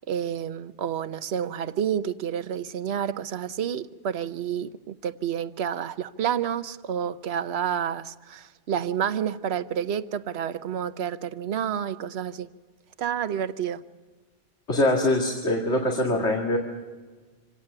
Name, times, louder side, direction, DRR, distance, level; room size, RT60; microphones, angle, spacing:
voice 1, 0.1-12.5 13.0-13.8, right 9 dB, 70° right, 1.0 m, -29 dB
voice 2, 14.7-16.6, left 1 dB, 90° left, 2.5 m, -23 dB
26.0 x 18.0 x 6.7 m
omnidirectional pair, 1.1 m